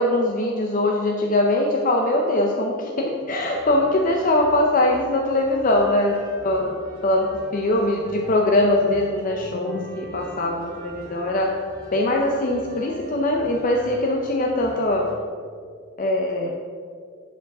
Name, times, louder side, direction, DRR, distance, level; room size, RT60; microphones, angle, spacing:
voice 1, 0.0-6.7 7.0-11.5 11.9-15.1 16.0-16.5, left 1 dB, 45° left, 1 dB, 0.6 m, -22 dB
sound 1, 3.3-15.1, right 1 dB, 50° right, 1.8 m, -41 dB
7.8 x 4.8 x 5.9 m, 2.1 s
head